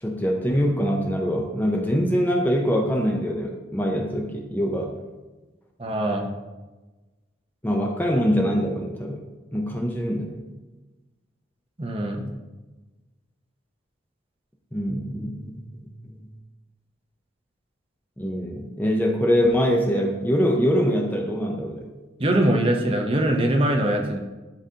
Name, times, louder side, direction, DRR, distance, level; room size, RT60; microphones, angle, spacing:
voice 1, 0.0-4.9 7.6-9.2 9.5-10.4 14.7-16.2 18.2-21.9, equal, 10° left, 1 dB, 0.6 m, -24 dB
voice 2, 5.8-6.3 11.8-12.3 22.2-24.2, right 1 dB, 30° right, 2 dB, 0.7 m, -22 dB
11.5 x 3.9 x 2.8 m, 1.2 s
head